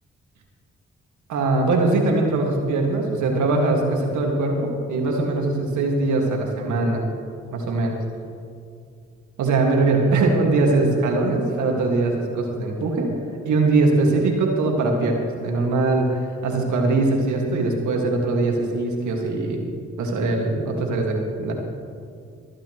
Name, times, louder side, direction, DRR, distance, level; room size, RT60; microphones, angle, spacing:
voice 1, 1.3-7.0 7.5-8.0 9.4-13.1 13.5-19.6 20.0-21.5, right 3 dB, 75° right, 1 dB, 1.9 m, -21 dB
25.5 x 8.8 x 3.1 m, 2.3 s
hypercardioid pair, 40°, 30 cm